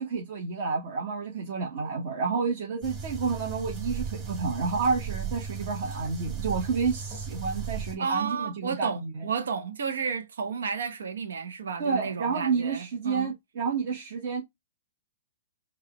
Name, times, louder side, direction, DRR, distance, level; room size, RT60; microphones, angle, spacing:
voice 1, 0.0-9.3 11.8-14.4, right 5 dB, 55° right, 1.2 m, -30 dB
sound 1, 2.8-7.9, right 6 dB, 20° right, 1.5 m, -36 dB
voice 2, 8.0-13.3, right 6 dB, 85° right, 0.8 m, -32 dB
4.7 x 2.3 x 3.0 m
hypercardioid pair, 140°, 0 cm